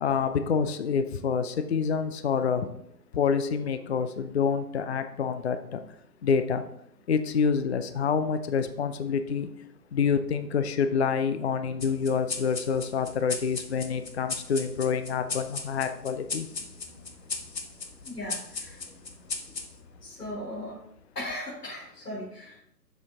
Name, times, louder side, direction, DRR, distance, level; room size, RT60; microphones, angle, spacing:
voice 1, 0.0-2.7 3.1-5.6 6.2-6.6 7.1-9.5 9.9-16.5, left 6 dB, 45° left, 10 dB, 0.5 m, -27 dB
sound 1, 11.8-20.7, left 4 dB, 90° left, 1.2 m, -38 dB
voice 2, 18.0-18.8 20.0-20.8 21.1-22.6, left 1 dB, 75° left, -5 dB, 3.3 m, -37 dB
7.1 x 6.7 x 3.5 m, 0.72 s
figure-of-eight pair, 140°, 48 cm